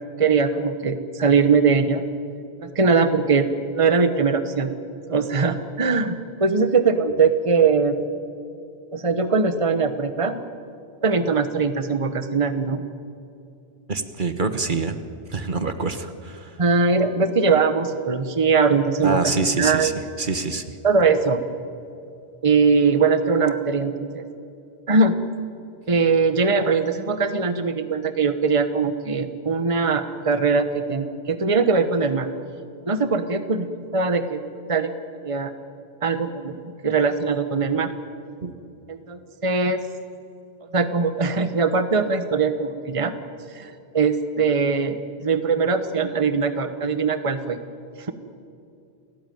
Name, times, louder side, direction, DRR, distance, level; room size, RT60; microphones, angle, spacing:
voice 1, 0.2-2.0 2.6-4.7 5.1-8.0 8.9-10.4 11.0-12.8 16.6-19.9 20.8-21.4 22.4-24.2 24.9-25.1 25.9-32.3 32.8-34.9 35.2-35.5 36.0-36.6 36.8-37.9 38.9-39.8 40.6-43.1 43.5-47.6 48.0-48.1, right 4 dB, 30° right, 9 dB, 1.2 m, -21 dB
voice 2, 13.9-15.0 15.3-16.6 19.0-19.9 20.2-20.6 38.4-38.5, right 3 dB, 50° right, 9 dB, 1.5 m, -25 dB
29.0 x 18.0 x 9.4 m, 2.6 s
omnidirectional pair, 1.1 m